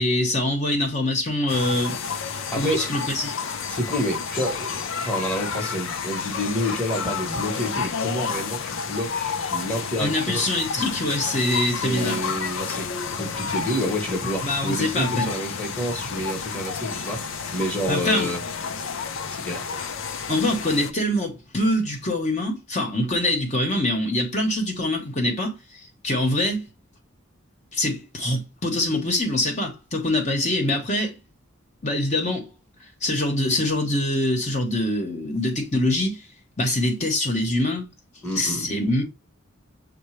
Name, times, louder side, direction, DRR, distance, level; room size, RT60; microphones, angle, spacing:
voice 1, 0.0-2.0 2.6-3.3 10.0-12.2 14.4-15.3 17.9-18.3 20.3-25.6 26.0-26.7 27.7-31.2 31.8-32.5 33.0-36.2 36.6-37.9 38.3-39.0, left 1 dB, 35° left, 1.0 m, -24 dB
sound 1, 1.5-20.9, left 6 dB, 70° left, 0.5 m, -30 dB
voice 2, 2.5-2.9 3.7-10.4 11.7-12.9 13.1-18.4 19.3-19.8 38.2-38.7, equal, 5° left, 1.0 m, -29 dB
6.6 x 2.2 x 3.1 m
head